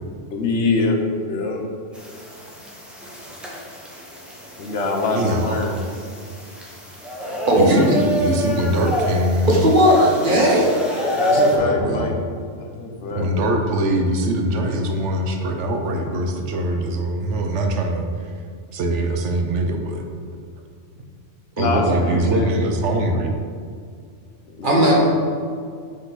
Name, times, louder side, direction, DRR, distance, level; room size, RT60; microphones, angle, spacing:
voice 1, 0.3-1.0 1.3-1.6 4.6-5.9 11.1-12.2 12.6-13.3 21.6-22.6 24.6-25.0, left 3 dB, 70° left, 2 dB, 1.1 m, -24 dB
sound 1, 1.9-11.6, equal, ahead, 0.8 m, -27 dB
voice 2, 5.1-5.8 7.6-9.7 10.6-10.7 11.5-12.1 13.1-18.3 18.7-20.0 21.6-23.3, right 1 dB, 70° right, 4 dB, 1.0 m, -22 dB
voice 3, 7.2-8.0 9.5-10.7 24.6-25.0, equal, 45° right, -3 dB, 1.3 m, -16 dB
5.8 x 5.3 x 4.0 m, 2.1 s
omnidirectional pair, 1.3 m